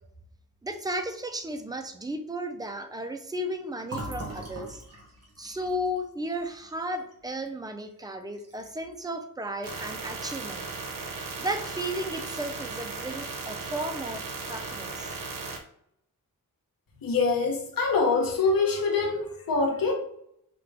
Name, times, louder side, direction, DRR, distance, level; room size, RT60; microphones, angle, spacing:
voice 1, 0.6-4.8 5.4-10.6 11.4-15.1, equal, 10° right, 6 dB, 0.5 m, -34 dB
Fill (with liquid), 3.9-7.5 7.9-8.0 8.3-8.9, right 1 dB, 45° right, 1.6 m, -41 dB
sound 1, 9.6-15.6, right 4 dB, 80° right, 0.9 m, -36 dB
voice 2, 17.0-19.9, left 4 dB, 85° left, 1 dB, 1.0 m, -25 dB
5.9 x 2.5 x 3.3 m, 0.73 s
wide cardioid pair, 110°, 34 cm